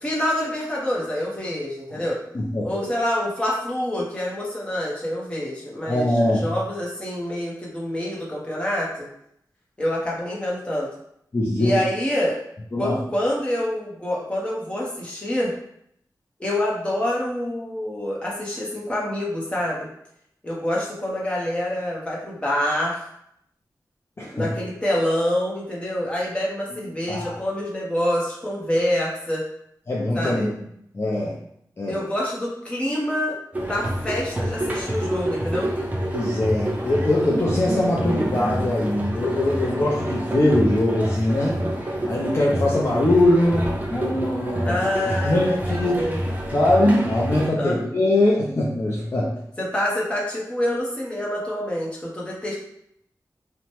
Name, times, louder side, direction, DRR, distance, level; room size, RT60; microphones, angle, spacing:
voice 1, 0.0-2.2 2.6-9.1 9.8-10.9 11.6-12.4 12.8-15.5 16.4-19.9 20.4-23.0 24.3-29.4 30.1-30.5 31.9-33.4 33.6-35.7 44.6-46.2 47.5-47.8 49.6-52.6, left 1 dB, 15° left, -5 dB, 0.9 m, -26 dB
voice 2, 2.3-2.9 5.8-6.5 11.3-11.8 12.7-13.0 24.2-24.5 27.1-27.4 29.9-30.5 30.9-31.4 31.8-32.0 36.1-41.6 42.1-46.0 46.5-49.4, left 1 dB, 35° left, -5 dB, 0.5 m, -22 dB
sound 1, 33.5-47.5, right 1 dB, 25° right, 0.5 m, -27 dB
2.9 x 2.2 x 2.9 m, 0.73 s
wide cardioid pair, 100°, 7 cm